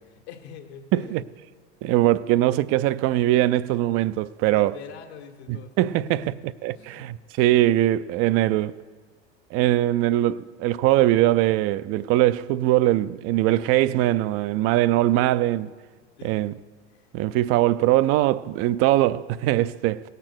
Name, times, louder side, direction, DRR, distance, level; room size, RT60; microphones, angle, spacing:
voice 1, 0.1-1.2 1.8-2.1 4.4-5.7 6.1-6.4 6.7-7.1 16.2-16.4 16.9-17.1, left 7 dB, 70° left, 1.7 m, -44 dB
voice 2, 1.8-4.8 5.5-6.3 6.6-8.8 9.5-15.7 16.2-16.5 17.1-20.0, right 14 dB, 45° right, 0.4 m, -21 dB
17.5 x 6.8 x 6.1 m
hypercardioid pair, 100°, 34 cm